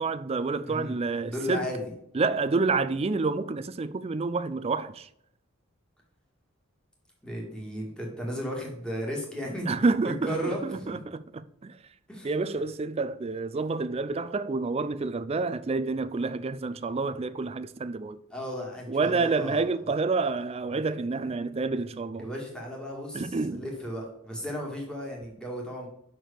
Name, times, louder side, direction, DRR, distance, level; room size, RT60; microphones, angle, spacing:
voice 1, 0.0-1.7 2.1-5.1 9.7-11.8 12.2-18.2 18.9-22.3 23.1-23.6, right 3 dB, 30° right, 0.4 m, -28 dB
voice 2, 1.3-1.9 7.2-9.7 10.0-10.9 12.1-12.3 18.3-19.7 21.2-21.3 22.2-25.9, equal, 5° left, 2.0 m, -35 dB
6.0 x 4.7 x 6.6 m
head